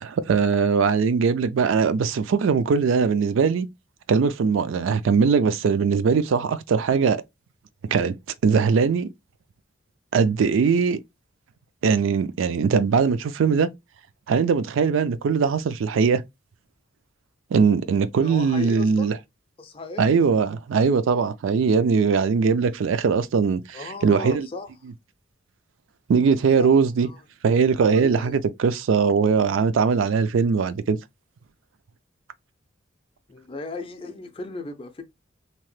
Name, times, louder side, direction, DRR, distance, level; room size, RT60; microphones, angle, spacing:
voice 1, 0.0-3.7 4.1-7.2 7.9-8.1 8.4-9.1 10.1-11.0 11.8-13.7 14.3-16.2 17.5-19.1 20.0-24.5 26.1-27.1 27.4-31.0, right 5 dB, 75° right, 0.3 m, -20 dB
voice 2, 18.2-19.1 19.6-20.1 23.7-24.7 26.6-26.8 27.0-27.2 27.9-28.4 33.3-35.0, left 3 dB, 25° left, 0.4 m, -36 dB
2.8 x 2.1 x 3.1 m
head